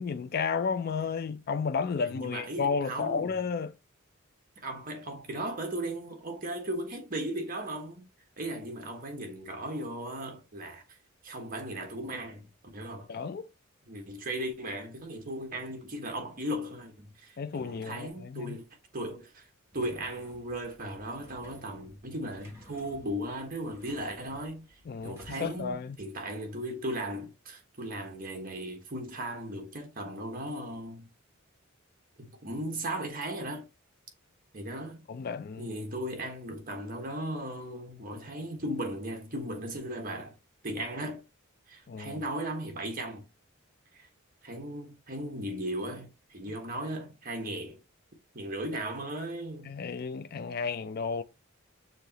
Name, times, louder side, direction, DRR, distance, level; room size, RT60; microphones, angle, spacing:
voice 1, 0.0-3.7 13.1-13.5 17.4-18.6 24.9-26.0 35.1-35.7 41.9-42.2 49.6-51.2, left 5 dB, 45° left, 0.4 m, -32 dB
voice 2, 2.0-3.3 4.6-8.1 8.4-11.0 11.2-12.5 12.7-13.1 13.9-18.6 18.9-19.4 19.7-31.1 32.2-33.7 34.5-35.0 35.6-40.3 40.6-41.2 41.7-43.2 43.9-44.1 44.4-47.8 48.3-49.7, right 1 dB, 40° right, 1.3 m, -37 dB
sound 1, 19.7-25.7, equal, 10° right, 2.0 m, -55 dB
6.5 x 2.9 x 2.8 m
head